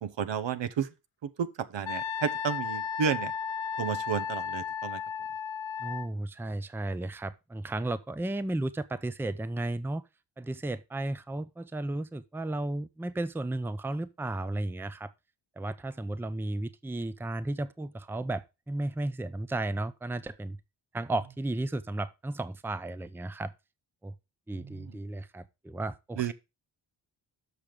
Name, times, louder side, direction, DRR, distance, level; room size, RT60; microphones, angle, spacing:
voice 1, 0.0-0.9 1.2-3.3 3.8-5.0 24.6-25.0 26.2-26.3, right 7 dB, 65° right, 1.0 m, -32 dB
Wind instrument woodwind instrument, 1.9-6.1, left 7 dB, 70° left, 0.9 m, -34 dB
voice 2, 5.8-10.1 10.4-15.1 15.6-20.6 20.9-23.5 24.0-24.1 24.5-26.3, right 2 dB, 5° right, 0.6 m, -34 dB
7.1 x 6.0 x 5.0 m
cardioid pair, 65°, 47 cm